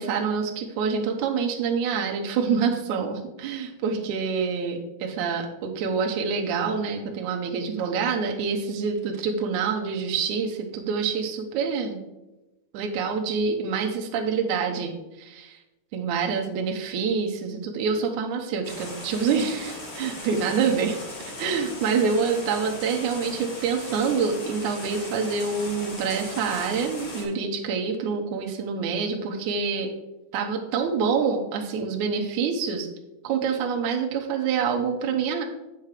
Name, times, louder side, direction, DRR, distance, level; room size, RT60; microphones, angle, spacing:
voice 1, 0.0-12.0 12.7-15.6 15.9-21.0 21.4-29.9 30.3-32.9 33.2-35.4, right 5 dB, 75° right, 1 dB, 1.8 m, -26 dB
sound 1, 18.6-27.2, left 2 dB, 40° left, 2.8 m, -38 dB
8.3 x 6.4 x 4.9 m, 1.0 s
omnidirectional pair, 4.5 m